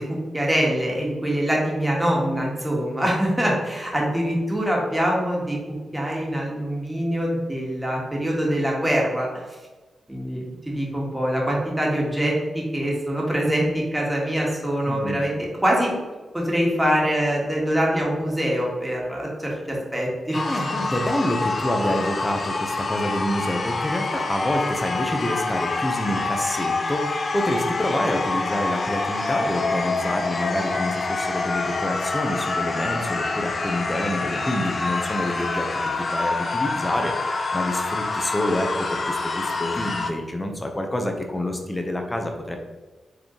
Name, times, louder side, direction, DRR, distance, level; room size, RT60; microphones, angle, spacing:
voice 1, 0.0-5.6 5.9-9.4 10.1-15.9 16.3-20.4, equal, 10° right, -3 dB, 1.5 m, -24 dB
voice 2, 14.9-15.2 20.4-35.7 36.0-42.6, left 1 dB, 20° left, 4 dB, 0.8 m, -27 dB
sound 1, 20.3-40.1, left 3 dB, 50° left, 0.5 m, -26 dB
4.8 x 3.4 x 3.0 m, 1.2 s
cardioid pair, 60°, 0 cm